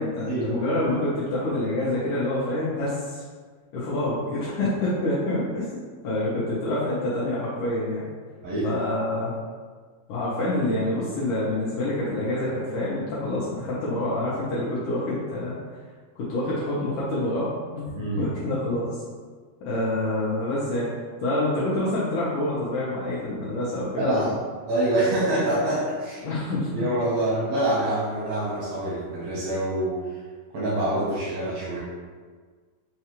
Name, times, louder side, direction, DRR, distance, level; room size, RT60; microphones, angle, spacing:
voice 1, 0.0-3.3 3.7-8.1 8.6-9.4 10.1-15.6 16.2-17.5 17.8-17.9 18.2-19.0 19.6-20.9 21.2-24.3 26.2-26.7, left 1 dB, 75° left, -8 dB, 1.9 m, -27 dB
voice 2, 17.9-18.2 24.0-24.3 24.7-26.3 26.7-30.2 30.5-31.8, right 1 dB, 75° right, -7 dB, 1.5 m, -26 dB
5.5 x 2.3 x 2.9 m, 1.5 s
omnidirectional pair, 4.0 m